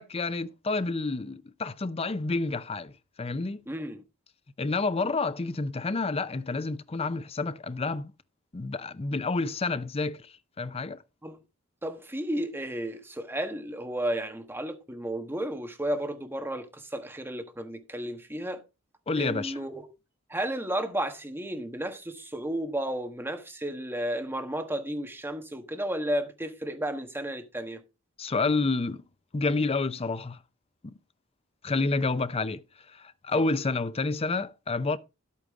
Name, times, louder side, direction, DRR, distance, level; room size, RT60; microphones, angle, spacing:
voice 1, 0.0-3.6 4.6-8.1 8.5-11.0 19.1-19.6 28.2-29.0 29.3-30.4 30.8-30.9 31.6-32.6 32.9-35.0, left 3 dB, 25° left, 0.5 m, -29 dB
voice 2, 3.7-4.0 11.2-11.4 11.8-18.6 19.2-19.8 20.3-27.8, right 1 dB, 10° right, 1.3 m, -33 dB
11.5 x 8.5 x 3.6 m
head